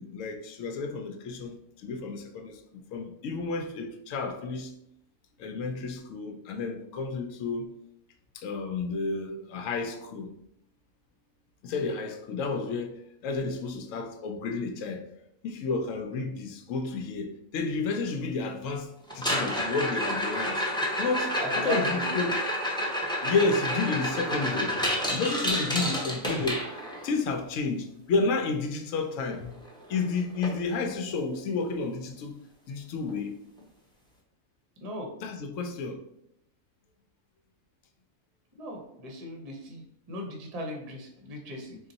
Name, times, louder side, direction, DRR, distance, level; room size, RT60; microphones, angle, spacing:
voice 1, 0.0-2.6 2.9-4.7 5.4-7.8 8.3-10.3 11.6-15.0 15.4-20.6 21.0-22.4 23.2-26.6 27.0-29.5 29.9-32.4 32.7-33.3 35.2-36.0, left 4 dB, 75° left, 0.9 m, -31 dB
sound 1, 19.1-27.1 29.3-29.4 29.7-30.0 30.4-30.5 31.1-31.2 33.1-33.2, equal, 5° left, 0.5 m, -29 dB
voice 2, 21.4-22.1 34.8-35.1 38.6-41.8, equal, 35° right, 0.7 m, -38 dB
3.9 x 2.2 x 3.9 m
omnidirectional pair, 1.4 m